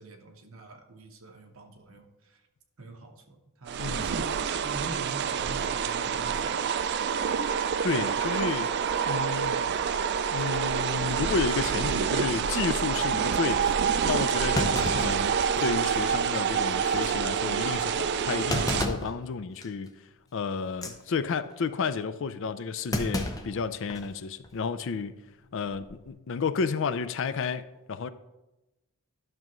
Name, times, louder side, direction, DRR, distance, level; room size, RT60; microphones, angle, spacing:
voice 1, 0.0-2.4 2.8-6.6, right 2 dB, 65° right, 1.0 m, -44 dB
sound 1, 3.7-18.9, right 7 dB, 50° right, 0.3 m, -27 dB
voice 2, 7.8-8.7 9.1-9.6 10.3-13.7 14.1-15.3 15.6-19.9 20.3-25.2 25.5-28.1, left 5 dB, 60° left, 0.4 m, -31 dB
Thump thud, 13.0-13.1 13.7-13.8 14.5-15.9 16.3-16.4 16.8-17.1 18.5-19.2 19.6-19.9 20.7-21.0 22.9-24.1 24.4-24.5 25.7-26.0, left 1 dB, 15° left, 0.6 m, -32 dB
11.0 x 6.1 x 3.1 m
head